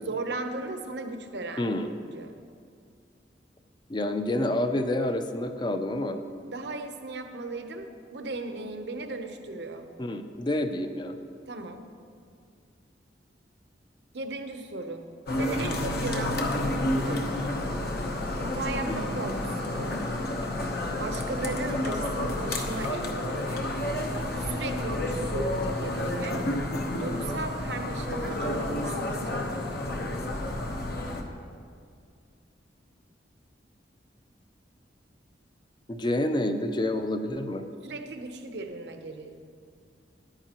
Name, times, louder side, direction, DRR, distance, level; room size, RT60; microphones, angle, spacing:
voice 1, 0.0-1.7 2.1-2.3 6.5-9.9 11.5-11.9 14.1-15.1 15.4-16.5 16.9-17.3 18.4-20.0 21.0-23.7 24.4-26.4 27.0-29.8 37.8-39.5, right 2 dB, 75° right, 6 dB, 0.8 m, -36 dB
voice 2, 1.6-1.9 3.9-6.2 10.0-11.1 18.9-19.0 35.9-37.6, left 1 dB, 25° left, 8 dB, 0.5 m, -28 dB
sound 1, 15.3-31.2, left 1 dB, 65° left, 1.0 m, -30 dB
14.0 x 10.5 x 2.9 m, 2.2 s
head